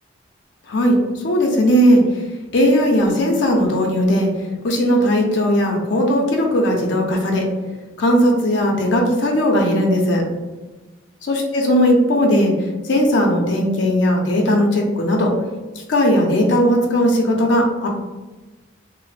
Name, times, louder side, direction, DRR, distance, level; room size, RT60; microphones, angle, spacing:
voice 1, 0.7-2.0 2.5-4.3 4.6-7.5 8.0-10.2 11.3-12.5 12.8-15.3 15.9-17.9, equal, 65° left, 1 dB, 0.5 m, -17 dB
3.2 x 2.0 x 3.2 m, 1.2 s
head